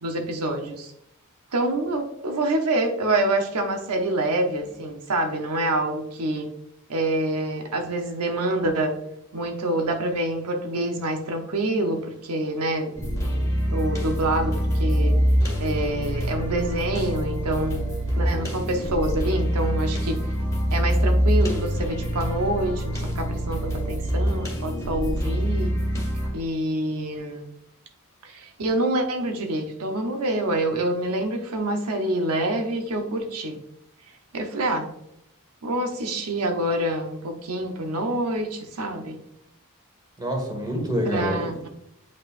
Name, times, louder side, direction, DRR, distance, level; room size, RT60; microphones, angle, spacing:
voice 1, 0.0-0.9 1.5-6.5 6.9-9.0 9.3-12.9 13.7-15.2 15.6-17.9 18.2-20.3 20.7-25.7 26.2-27.5 28.2-33.6 34.3-34.9 35.6-39.2 41.0-41.7, right 1 dB, 80° right, 4 dB, 0.8 m, -26 dB
sound 1, 13.0-26.3, equal, 15° left, 1.6 m, -25 dB
voice 2, 40.2-41.7, equal, 20° right, 1 dB, 1.6 m, -27 dB
8.4 x 5.2 x 2.5 m, 0.78 s
head